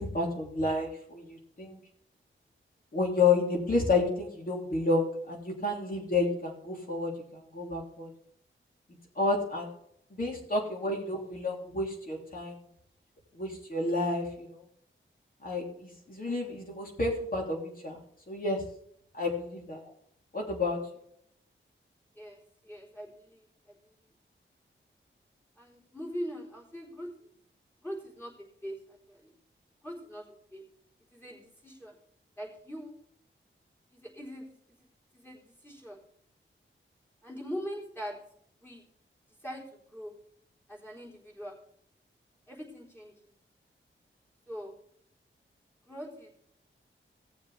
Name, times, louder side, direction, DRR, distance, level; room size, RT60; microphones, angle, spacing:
voice 1, 0.0-1.8 2.9-8.1 9.1-9.7 10.1-12.5 13.3-14.6 15.4-18.0 18.3-18.6 19.1-19.9 20.3-20.8, left 3 dB, 45° left, -1 dB, 3.2 m, -30 dB
voice 2, 22.2-23.8 25.6-27.3 27.8-28.3 28.6-29.3 29.8-30.6 31.1-32.0 32.4-32.9 33.9-34.5 35.1-36.0 37.2-38.2 38.6-38.9 39.4-40.1 40.7-41.6 42.5-43.1 44.5-44.8 45.9-46.3, equal, 10° left, -3 dB, 3.9 m, -42 dB
18.5 x 7.2 x 3.4 m, 0.69 s
wide cardioid pair, 125°, 21 cm